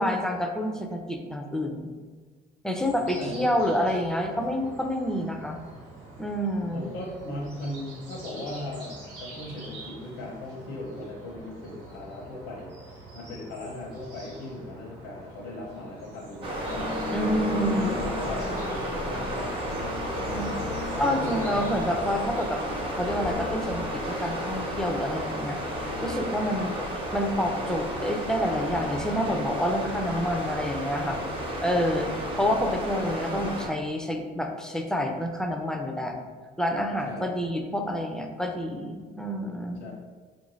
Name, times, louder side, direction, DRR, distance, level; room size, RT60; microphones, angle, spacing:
voice 1, 0.0-1.9 2.6-5.6 6.2-6.9 17.1-17.9 20.3-20.6 21.0-22.6 22.9-25.6 26.0-26.8 27.1-31.2 31.6-32.1 32.4-36.1 36.6-39.8, equal, 5° left, 3 dB, 0.4 m, -28 dB
sound 1, 2.7-22.5, right 2 dB, 90° right, 1.1 m, -46 dB
voice 2, 3.2-3.5 6.7-16.9 17.5-20.4 20.9-21.7 26.5-26.8 32.0-32.4 37.1-37.3 39.8-39.9, left 1 dB, 90° left, -2 dB, 0.7 m, -38 dB
sound 2, 16.4-33.7, right 1 dB, 30° right, 0.9 m, -33 dB
sound 3, 16.5-32.3, left 4 dB, 55° left, 0.5 m, -38 dB
4.3 x 2.6 x 3.1 m, 1.5 s
cardioid pair, 110°, 17 cm